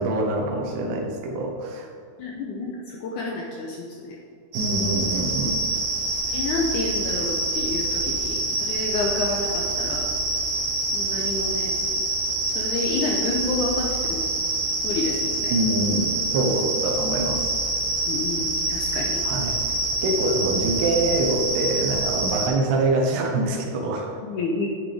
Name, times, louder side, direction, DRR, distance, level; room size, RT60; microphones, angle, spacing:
voice 1, 0.0-1.9 4.5-5.6 15.5-17.5 19.2-19.6 20.0-24.1, right 2 dB, 90° right, 2 dB, 3.2 m, -25 dB
voice 2, 2.2-4.2 6.3-10.1 10.9-11.7 12.5-14.3 14.8-15.5 18.1-19.2 24.2-24.7, left 3 dB, 75° left, -1 dB, 1.9 m, -29 dB
sound 1, 4.5-22.5, right 2 dB, 70° right, 3.3 m, -26 dB
10.0 x 9.7 x 3.5 m, 2.4 s
omnidirectional pair, 4.5 m